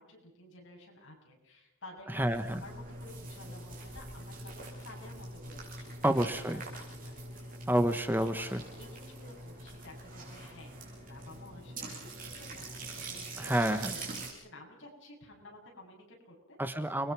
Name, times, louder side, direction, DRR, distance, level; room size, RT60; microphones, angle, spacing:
voice 1, 0.0-7.5 8.2-13.9 14.1-16.6, left 2 dB, 60° left, 0 dB, 8.0 m, -53 dB
voice 2, 2.1-2.6 6.0-6.6 7.7-8.6 13.4-14.0 16.6-17.1, right 1 dB, 10° right, 9 dB, 1.1 m, -29 dB
sound 1, 2.2-14.3, right 2 dB, 40° right, 7.7 m, -44 dB
29.5 x 22.5 x 6.1 m, 0.84 s
head